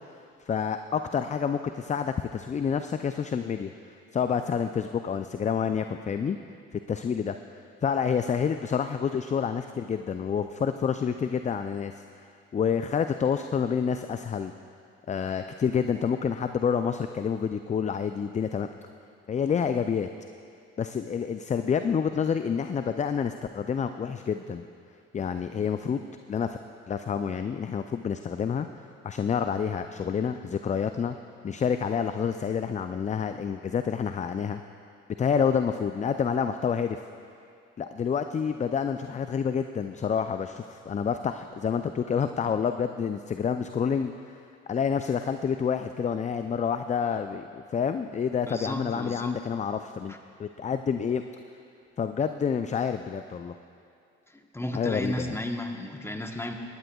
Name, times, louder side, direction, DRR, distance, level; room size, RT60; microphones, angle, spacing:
voice 1, 0.5-3.7 4.1-6.4 6.7-7.4 7.8-12.2 12.5-14.5 15.1-18.7 19.3-20.1 20.8-24.6 25.1-26.0 26.3-26.6 26.9-28.7 29.0-31.2 31.4-34.6 35.2-37.0 37.8-44.4 44.7-50.1 50.4-51.2 52.0-53.6 54.7-55.3, left 7 dB, 25° left, 9 dB, 0.4 m, -28 dB
voice 2, 48.5-49.4 50.1-50.2 54.3-56.5, left 1 dB, 10° left, 4 dB, 1.1 m, -34 dB
19.5 x 11.0 x 2.3 m, 2.4 s
hypercardioid pair, 55°, 30 cm